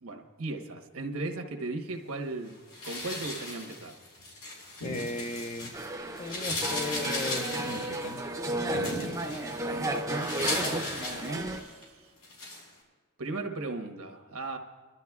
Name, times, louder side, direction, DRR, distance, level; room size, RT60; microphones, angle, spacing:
voice 1, 0.0-2.6 2.8-4.0 9.7-11.9 13.2-14.6, right 2 dB, 85° right, 1.2 m, -37 dB
sound 1, 2.7-5.9 6.2-11.8 12.2-12.6, left 2 dB, 85° left, 5.0 m, -37 dB
voice 2, 4.8-5.8 6.2-8.3, left 2 dB, 30° left, 0.5 m, -36 dB
sound 2, 5.7-11.6, right 1 dB, 15° right, 0.6 m, -33 dB
29.0 x 12.0 x 2.4 m
head